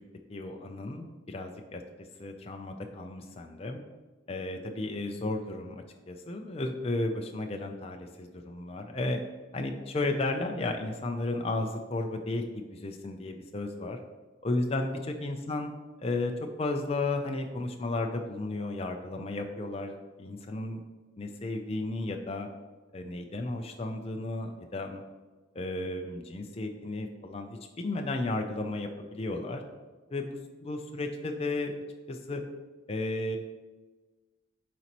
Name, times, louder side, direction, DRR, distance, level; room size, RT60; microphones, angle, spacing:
voice 1, 0.3-1.8 2.2-3.8 4.3-9.2 9.5-14.0 14.4-15.7 16.0-16.3 16.6-19.9 20.2-20.8 21.2-22.5 22.9-25.0 25.5-29.6 30.1-31.7 32.1-32.4 32.9-33.4, left 2 dB, 30° left, 4 dB, 0.5 m, -33 dB
10.5 x 4.1 x 3.0 m, 1.3 s
head